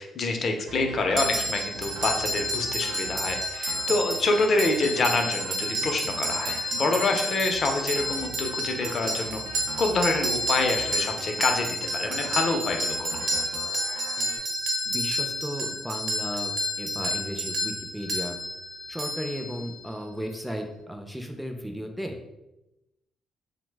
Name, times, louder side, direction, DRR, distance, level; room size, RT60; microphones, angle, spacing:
voice 1, 0.0-9.4 9.8-11.7 11.9-13.4, left 3 dB, 50° left, 3 dB, 0.5 m, -27 dB
sound 1, 0.7-14.4, right 4 dB, 85° right, 0.3 m, -42 dB
sound 2, 1.2-19.9, equal, 60° right, 0.7 m, -30 dB
voice 2, 14.9-18.4 18.9-22.2, equal, ahead, 4 dB, 0.4 m, -35 dB
3.0 x 2.0 x 3.3 m, 0.95 s
cardioid pair, 90°, 0 cm